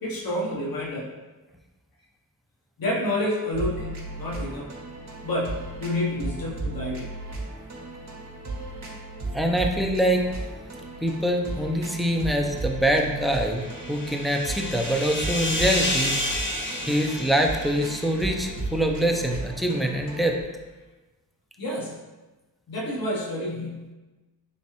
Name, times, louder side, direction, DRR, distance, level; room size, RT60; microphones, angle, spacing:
voice 1, 0.0-1.1 2.8-4.7 5.2-7.1 21.6-22.0 22.7-23.9, left 1 dB, 75° left, -5 dB, 0.9 m, -29 dB
sound 1, 3.5-20.4, right 2 dB, 50° right, 0.8 m, -35 dB
voice 2, 9.3-10.2 11.0-16.1 16.9-20.4, right 1 dB, ahead, 1 dB, 0.4 m, -24 dB
sound 2, 13.0-18.6, left 1 dB, 30° left, 0.7 m, -31 dB
3.4 x 3.1 x 2.9 m, 1.2 s
wide cardioid pair, 65°, 36 cm